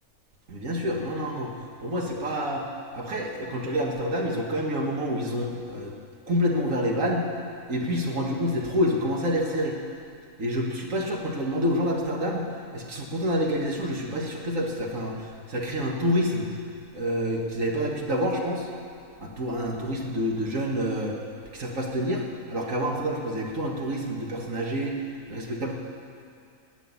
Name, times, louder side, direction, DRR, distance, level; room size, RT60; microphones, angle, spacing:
voice 1, 0.5-1.5 1.8-2.6 2.9-5.9 6.3-7.3 7.7-9.8 10.4-16.5 16.9-18.7 19.2-21.2 21.5-25.0 25.3-25.7, equal, 65° right, -1 dB, 2.2 m, -28 dB
17.0 x 6.2 x 9.8 m, 2.5 s
omnidirectional pair, 1.5 m